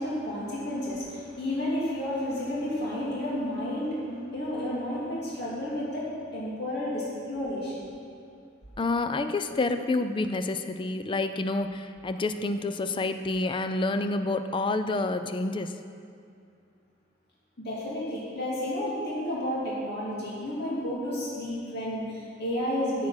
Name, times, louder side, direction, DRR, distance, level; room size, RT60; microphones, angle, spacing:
voice 1, 0.0-7.9 17.6-23.1, left 1 dB, 55° left, -7 dB, 2.5 m, -31 dB
voice 2, 8.8-15.8, left 2 dB, 25° left, 9 dB, 0.4 m, -28 dB
9.7 x 7.4 x 5.7 m, 2.4 s
head